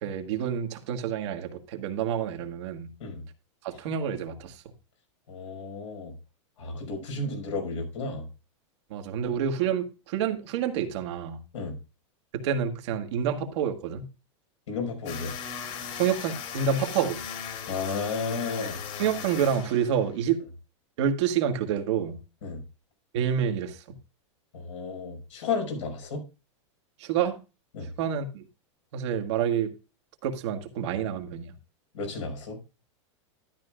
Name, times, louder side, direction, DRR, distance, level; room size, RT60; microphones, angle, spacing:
voice 1, 0.0-2.9 3.6-4.6 7.1-7.2 8.9-11.4 12.3-14.1 16.0-17.2 19.0-20.4 21.0-22.2 23.1-24.0 27.0-27.4 28.0-28.4 28.9-29.7 30.2-31.5, right 8 dB, 65° right, 1.7 m, -28 dB
voice 2, 5.3-6.1 6.6-8.3 11.5-11.7 14.7-15.3 17.7-18.8 22.4-22.6 24.5-26.2 27.7-27.9 31.9-32.6, left 4 dB, 80° left, 5.6 m, -33 dB
sound 1, 15.1-20.2, left 7 dB, 45° left, 3.0 m, -38 dB
12.5 x 10.5 x 2.4 m
hypercardioid pair, 125°, 16 cm